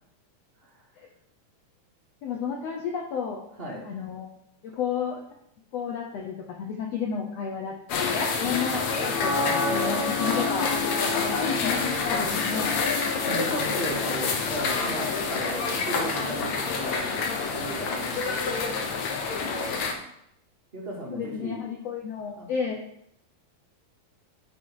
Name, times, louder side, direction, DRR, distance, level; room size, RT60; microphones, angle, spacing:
voice 1, 2.2-3.4 3.8-4.3 4.6-5.2 5.7-10.7 11.3-12.8 21.1-22.8, left 6 dB, 85° left, 1 dB, 1.4 m, -32 dB
sound 1, 7.9-19.9, left 4 dB, 70° left, 1.9 m, -27 dB
voice 2, 13.2-17.2 17.5-18.5 20.7-21.6 22.4-22.5, right 1 dB, 25° right, -4 dB, 1.3 m, -36 dB
10.5 x 4.4 x 4.7 m, 0.74 s
omnidirectional pair, 4.0 m